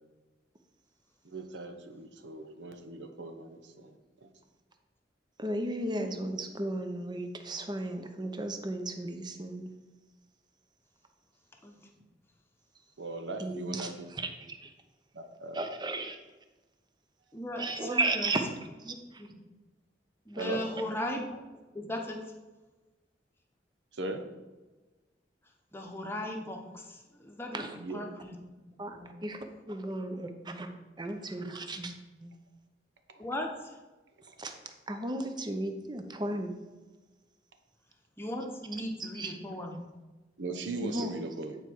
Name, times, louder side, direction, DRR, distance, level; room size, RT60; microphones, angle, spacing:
voice 1, 1.2-3.9 4.2-4.3 13.0-14.1 15.1-15.7 20.4-20.6 23.9-24.2 27.8-28.0 40.4-41.6, right 3 dB, 85° right, 6 dB, 0.9 m, -38 dB
voice 2, 5.4-9.7 13.4-14.7 15.5-16.2 17.6-18.4 18.8-19.2 20.4-20.5 27.5-27.8 28.8-30.7 31.0-31.9 32.2-32.3 34.4-34.5 34.9-36.5 39.1-39.3 40.8-41.2, right 2 dB, 25° right, 6 dB, 0.7 m, -35 dB
voice 3, 17.3-18.3 18.9-19.3 20.3-21.4 21.7-22.3 25.7-28.4 29.0-29.1 33.2-33.8 38.2-39.7, left 1 dB, 15° left, 1 dB, 1.0 m, -37 dB
9.1 x 4.5 x 4.6 m, 1.2 s
head